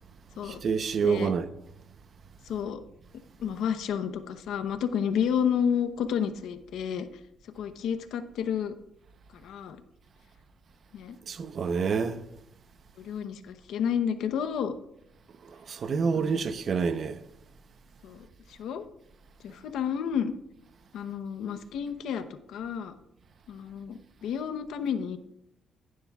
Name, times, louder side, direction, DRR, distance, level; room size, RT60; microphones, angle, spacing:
voice 1, 0.4-1.5 11.3-12.2 15.4-17.2, right 5 dB, 50° right, 0.7 m, -28 dB
voice 2, 2.5-2.8 3.4-7.1 7.5-8.8 9.4-9.8 10.9-11.2 13.0-14.7 16.2-16.4 18.0-18.8 19.4-20.3 20.9-22.9 23.5-25.2, left 8 dB, 80° left, 0.9 m, -31 dB
16.0 x 11.0 x 2.4 m
cardioid pair, 90°, 0 cm